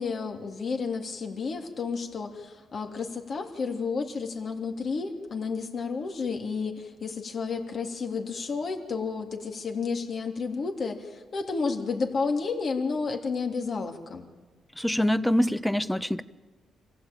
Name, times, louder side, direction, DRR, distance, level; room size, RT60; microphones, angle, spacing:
voice 1, 0.0-14.3, left 4 dB, 55° left, 2 dB, 3.1 m, -31 dB
voice 2, 14.8-16.2, equal, 5° left, 14 dB, 0.9 m, -25 dB
26.0 x 16.0 x 9.0 m, 1.3 s
cardioid pair, 65°, 0 cm